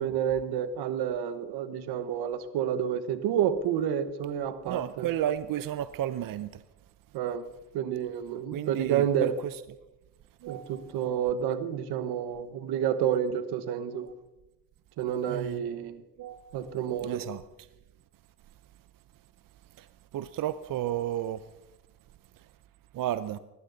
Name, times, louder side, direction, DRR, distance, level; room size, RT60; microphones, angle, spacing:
voice 1, 0.0-5.1 7.1-7.4 7.7-9.3 10.5-14.1 15.0-16.0 16.5-17.2, right 9 dB, 90° right, 1.3 m, -29 dB
voice 2, 4.7-6.6 8.5-9.6 10.4-10.9 15.3-15.6 16.2-16.6 17.0-17.4 19.8-21.4 22.9-23.4, right 12 dB, 60° right, 0.7 m, -33 dB
19.0 x 15.5 x 4.0 m
cardioid pair, 90°, 37 cm